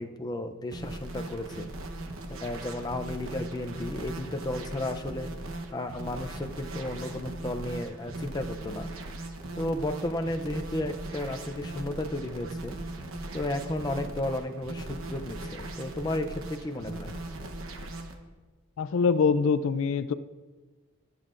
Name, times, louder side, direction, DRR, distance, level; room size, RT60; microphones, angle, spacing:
voice 1, 0.0-1.7 2.3-5.3 5.7-8.9 9.6-12.8 13.3-17.2, left 1 dB, 20° left, 5 dB, 0.5 m, -33 dB
sound 1, 0.7-18.2, right 2 dB, 75° right, 1.0 m, -39 dB
voice 2, 18.8-20.1, left 5 dB, 70° left, 13 dB, 0.4 m, -24 dB
21.5 x 7.4 x 2.5 m, 1.4 s
head